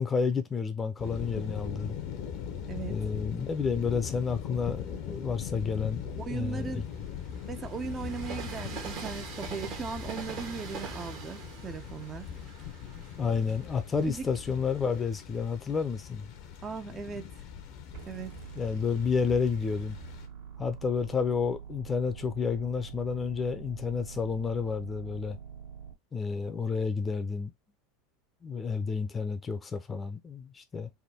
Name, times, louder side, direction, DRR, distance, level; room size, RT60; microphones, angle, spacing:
voice 1, 0.0-2.0 2.9-6.0 6.3-6.8 13.2-16.3 18.6-20.0 20.6-25.4 26.1-27.5 28.4-30.9, left 5 dB, 25° left, 0.6 m, -30 dB
sound 1, 1.0-20.3, left 8 dB, 55° left, 0.8 m, -41 dB
Train, 2.1-3.8 4.4-15.0, right 6 dB, 55° right, 1.2 m, -44 dB
voice 2, 2.7-3.0 6.2-6.8 7.4-12.3 14.0-14.3 16.6-17.3 18.1-18.4, right 5 dB, 30° right, 0.6 m, -38 dB
sound 2, 17.9-25.9, right 7 dB, 70° right, 1.6 m, -45 dB
3.5 x 2.1 x 4.2 m
hypercardioid pair, 85°, 0 cm